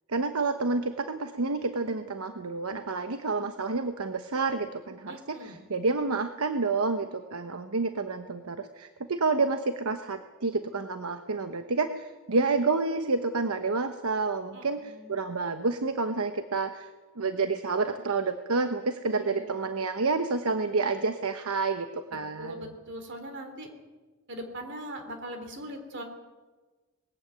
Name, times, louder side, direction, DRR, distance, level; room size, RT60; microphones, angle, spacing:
voice 1, 0.1-16.9 17.2-22.7, right 3 dB, 85° right, 8 dB, 1.0 m, -29 dB
voice 2, 5.1-5.6 14.5-15.3 19.0-19.7 22.4-23.7 24.3-26.0, right 1 dB, 55° right, 5 dB, 3.3 m, -41 dB
20.5 x 15.5 x 9.1 m, 1.3 s
head